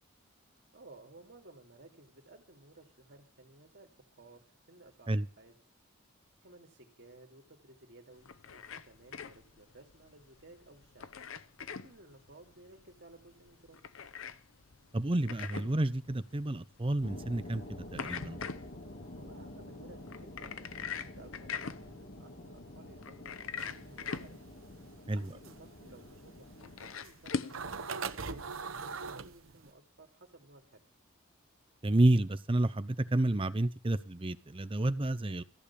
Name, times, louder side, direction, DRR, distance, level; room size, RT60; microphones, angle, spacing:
voice 1, 0.7-5.5 6.4-11.1 11.7-13.8 19.1-24.5 25.1-30.8, right 2 dB, 55° right, 3 dB, 2.8 m, -57 dB
sound 1, 8.1-27.6, left 6 dB, 75° left, 0.7 m, -44 dB
voice 2, 14.9-18.4 25.1-25.3 31.8-35.4, right 1 dB, 25° right, 13 dB, 0.6 m, -30 dB
sound 2, 17.0-27.0, left 1 dB, 55° left, 2.6 m, -48 dB
sound 3, 23.6-29.7, right 5 dB, 75° right, 0.9 m, -41 dB
14.5 x 6.9 x 8.4 m, 0.38 s
head